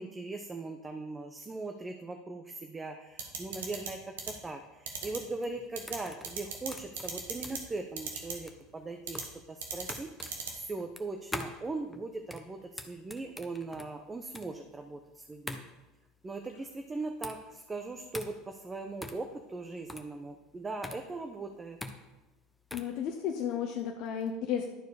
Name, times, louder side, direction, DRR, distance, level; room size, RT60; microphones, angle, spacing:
voice 1, 0.0-10.1 10.5-15.6 16.2-21.8, right 3 dB, 20° right, 6 dB, 0.7 m, -40 dB
sound 1, 3.2-3.9 4.2-4.3 4.9-5.2 5.8-6.0 6.2-6.7 7.0-7.6 8.0-8.3 9.1-9.2 9.6-9.9 10.2-10.5, right 6 dB, 90° right, 1.5 m, -36 dB
sound 2, 5.2-23.0, left 2 dB, 10° left, 0.9 m, -45 dB
voice 2, 22.7-24.7, left 8 dB, 60° left, 3 dB, 0.8 m, -33 dB
11.5 x 4.6 x 4.9 m, 1.1 s
hypercardioid pair, 90°, 0 cm